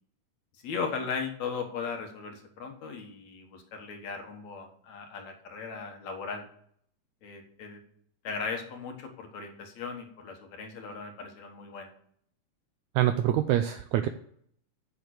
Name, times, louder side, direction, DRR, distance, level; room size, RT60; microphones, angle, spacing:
voice 1, 0.6-6.5 7.2-7.8 8.2-11.9, left 5 dB, 60° left, 3 dB, 2.5 m, -37 dB
voice 2, 12.9-14.1, right 12 dB, 85° right, 9 dB, 1.7 m, -25 dB
8.6 x 7.1 x 6.4 m, 0.65 s
omnidirectional pair, 3.9 m